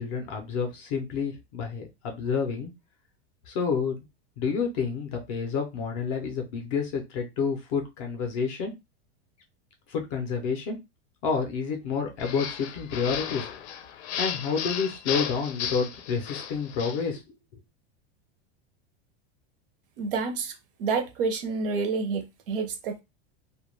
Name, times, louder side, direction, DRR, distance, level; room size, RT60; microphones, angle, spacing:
voice 1, 0.0-2.7 3.5-4.1 4.4-8.7 9.9-10.8 11.2-13.5 14.2-17.2 17.5-17.6, left 5 dB, 30° left, 0.5 m, -29 dB
sound 1, 12.2-17.1, left 8 dB, 85° left, 0.5 m, -34 dB
voice 2, 20.0-23.0, right 4 dB, 55° right, 0.6 m, -29 dB
2.2 x 2.1 x 3.0 m
supercardioid pair, 180°, 33 cm